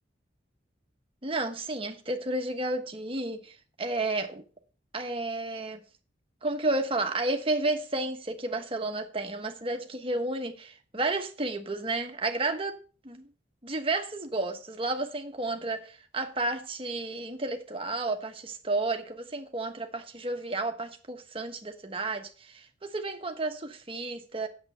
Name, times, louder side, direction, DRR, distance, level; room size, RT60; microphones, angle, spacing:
voice 1, 1.2-4.4 4.9-5.8 6.4-12.8 13.0-13.3 13.6-24.5, right 2 dB, 30° right, 1.2 m, -32 dB
8.8 x 7.4 x 5.6 m
head